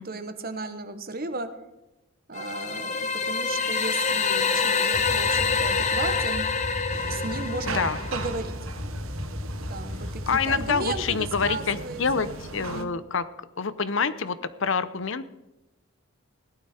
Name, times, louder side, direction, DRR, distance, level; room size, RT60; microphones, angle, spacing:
voice 1, 0.0-1.5 2.3-6.4 7.1-8.5 9.7-12.9, right 3 dB, 45° right, 10 dB, 1.2 m, -35 dB
sound 1, 2.3-8.3, left 5 dB, 35° left, 0.9 m, -26 dB
sound 2, 4.9-11.6, left 1 dB, 15° left, 0.5 m, -36 dB
sound 3, 6.9-12.8, right 3 dB, 70° right, 1.2 m, -38 dB
voice 2, 7.7-8.0 10.3-13.2 13.6-15.3, left 5 dB, 60° left, 14 dB, 0.7 m, -27 dB
17.0 x 12.0 x 4.3 m, 0.95 s
head